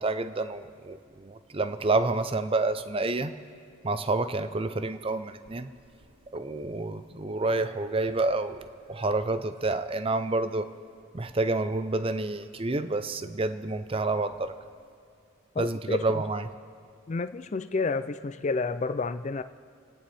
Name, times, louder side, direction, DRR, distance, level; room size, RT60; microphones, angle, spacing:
voice 1, 0.0-3.3 3.8-5.7 6.3-10.7 11.1-14.5 15.6-16.4, right 2 dB, 25° right, 11 dB, 0.6 m, -29 dB
voice 2, 15.6-16.2 17.1-19.4, left 3 dB, 35° left, 11 dB, 0.4 m, -30 dB
28.5 x 9.6 x 4.3 m, 2.3 s
head